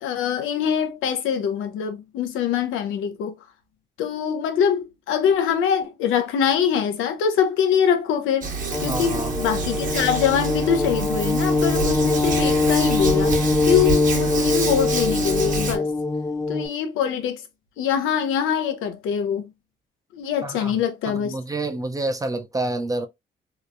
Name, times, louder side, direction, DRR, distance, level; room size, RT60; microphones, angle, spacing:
voice 1, 0.0-3.4 4.0-8.5 8.8-13.3 13.6-15.9 16.5-17.4 17.8-19.5 20.1-21.4, left 8 dB, 85° left, 0.6 m, -23 dB
Hands, 8.4-15.8, right 4 dB, 40° right, 1.1 m, -28 dB
sound 1, 8.7-16.7, left 3 dB, 15° left, 0.7 m, -23 dB
voice 2, 8.9-9.3 20.4-20.7 21.1-23.1, right 2 dB, 15° right, 0.5 m, -28 dB
2.9 x 2.1 x 2.5 m
cardioid pair, 90°, 20 cm